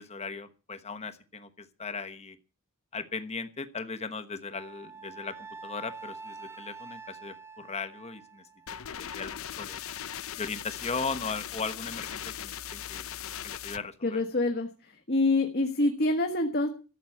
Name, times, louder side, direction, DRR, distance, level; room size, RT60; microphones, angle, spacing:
voice 1, 0.0-2.4 2.9-5.4 5.6-8.4 8.9-9.8 10.4-13.1 13.4-14.2, left 4 dB, 30° left, 9 dB, 1.2 m, -37 dB
Wind instrument woodwind instrument, 4.5-8.9, right 4 dB, 10° right, 0.8 m, -46 dB
sound 1, 8.7-13.8, left 10 dB, 75° left, 0.7 m, -39 dB
voice 2, 14.0-14.7 15.1-16.7, left 2 dB, 50° left, 5 dB, 1.5 m, -26 dB
13.5 x 8.0 x 8.5 m, 0.35 s
head